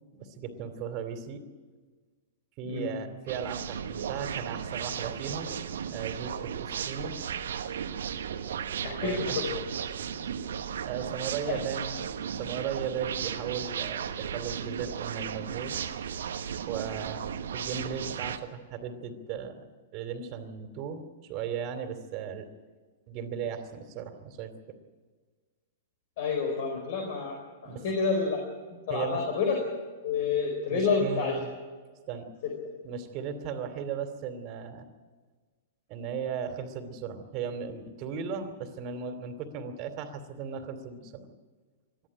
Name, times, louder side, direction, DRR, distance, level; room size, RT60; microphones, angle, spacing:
voice 1, 0.1-1.5 2.6-5.6 5.9-7.2 9.0-9.4 10.8-12.0 12.4-15.8 16.7-17.2 17.5-19.6 19.9-22.5 23.1-24.5 27.6-27.8 28.9-29.3 30.7-31.5 32.1-32.3 32.8-34.9 35.9-41.3, right 7 dB, 40° right, 7 dB, 2.6 m, -36 dB
sound 1, 3.3-18.4, right 8 dB, 70° right, 1.3 m, -35 dB
voice 2, 8.8-9.6 11.5-11.6 26.2-27.4 27.6-28.4 28.9-29.6 30.0-31.4 32.4-32.5, left 5 dB, 55° left, 3 dB, 4.5 m, -29 dB
21.5 x 13.5 x 10.0 m, 1.5 s
figure-of-eight pair, 105°, 0 cm